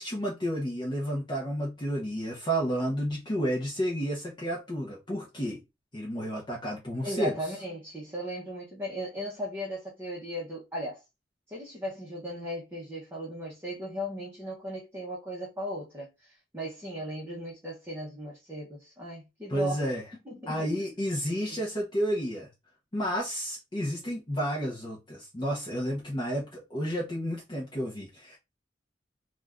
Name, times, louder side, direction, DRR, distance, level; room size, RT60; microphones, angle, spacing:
voice 1, 0.0-5.6 5.9-7.3 19.5-20.0 20.5-22.5 22.9-28.4, equal, 25° left, 0.6 m, -31 dB
voice 2, 7.0-11.0 11.5-19.8 20.2-20.7 21.4-21.6, equal, 10° right, 0.7 m, -37 dB
2.5 x 2.2 x 3.4 m
head